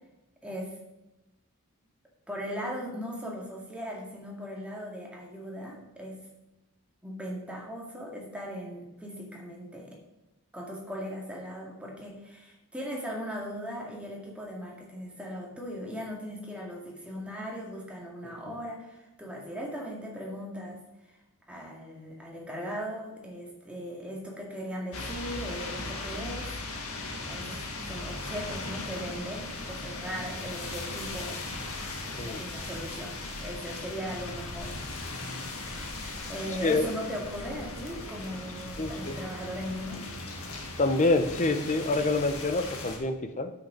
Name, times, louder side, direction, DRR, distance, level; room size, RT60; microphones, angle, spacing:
voice 1, 0.4-0.8 2.3-6.2 7.0-10.0 10.5-21.2 21.5-26.6 27.2-31.4 32.0-34.8 36.3-40.1, equal, 5° right, -2 dB, 2.2 m, -38 dB
sound 1, 24.9-43.0, left 2 dB, 70° left, 1.8 m, -38 dB
voice 2, 32.1-32.4 36.6-36.9 38.8-39.2 40.8-43.5, left 2 dB, 35° left, 9 dB, 0.8 m, -27 dB
8.9 x 7.9 x 5.2 m, 0.97 s
head